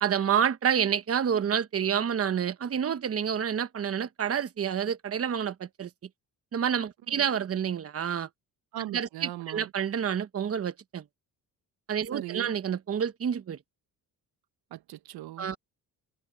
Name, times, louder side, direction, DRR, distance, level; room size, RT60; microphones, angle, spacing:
voice 1, 0.0-5.9 6.5-8.3 8.9-11.0 11.9-13.6 15.4-15.6, right 8 dB, 40° right, 1.0 m, -28 dB
voice 2, 8.7-9.7 12.1-12.5 14.7-15.6, right 15 dB, 90° right, 1.1 m, -39 dB
cardioid pair, 120°, 37 cm